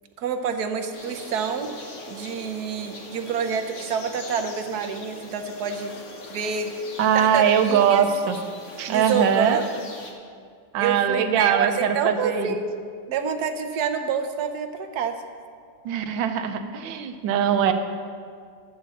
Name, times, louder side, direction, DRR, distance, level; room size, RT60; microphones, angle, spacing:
voice 1, 0.2-1.7 2.1-5.9 6.3-6.7 7.1-8.0 8.9-9.8 10.8-15.2, right 6 dB, 65° right, 7 dB, 1.1 m, -27 dB
sound 1, 0.9-10.1, left 2 dB, 45° left, 1.2 m, -41 dB
voice 2, 7.0-8.4 8.8-9.6 10.7-12.5 15.8-17.7, right 8 dB, 80° right, 7 dB, 1.4 m, -22 dB
13.0 x 7.8 x 4.0 m, 2.2 s
omnidirectional pair, 2.0 m